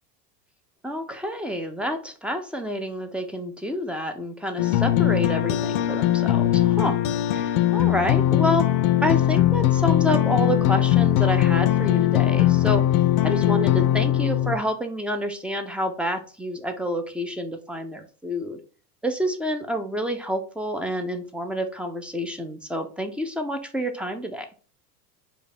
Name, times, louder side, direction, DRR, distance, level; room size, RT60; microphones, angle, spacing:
voice 1, 0.8-7.0 7.3-8.7 9.0-12.8 13.2-18.6 19.0-24.5, equal, ahead, 5 dB, 0.6 m, -28 dB
sound 1, 4.6-14.6, left 13 dB, 45° left, 0.6 m, -20 dB
4.8 x 2.5 x 4.3 m, 0.39 s
hypercardioid pair, 85°, 47 cm